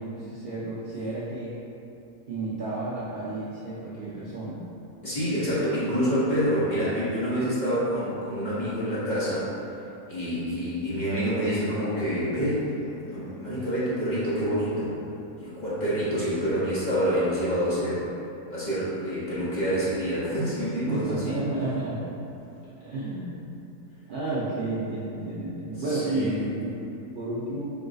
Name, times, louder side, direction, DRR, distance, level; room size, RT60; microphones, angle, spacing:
voice 1, 0.0-1.6 2.3-4.6 20.9-22.0 22.8-23.5 24.1-26.8 27.1-27.6, right 2 dB, 90° right, -9 dB, 0.4 m, -31 dB
voice 2, 5.0-9.5 10.1-14.9 15.4-18.1 18.5-21.4 25.9-26.5, equal, 35° left, -10 dB, 1.0 m, -27 dB
4.7 x 2.3 x 3.8 m, 2.8 s
omnidirectional pair, 1.6 m